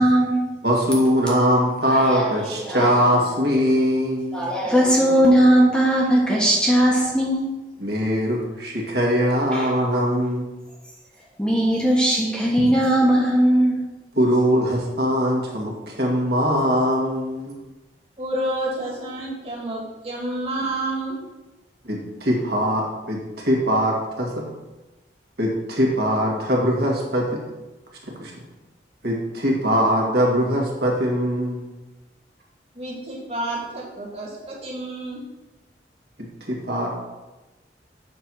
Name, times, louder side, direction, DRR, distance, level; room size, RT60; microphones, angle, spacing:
voice 1, 0.0-0.5 1.8-3.3 4.3-7.5 9.5-9.8 11.4-13.8, right 1 dB, 5° left, -3 dB, 1.2 m, -19 dB
voice 2, 0.6-4.5 7.8-10.4 14.2-17.6 21.9-24.5 25.4-27.4 28.2-28.3 29.0-31.7 36.2-36.9, equal, 60° right, -2 dB, 1.9 m, -21 dB
voice 3, 18.2-21.2 32.7-35.2, right 1 dB, 35° right, -3 dB, 2.1 m, -29 dB
7.3 x 4.5 x 6.2 m, 1.1 s
head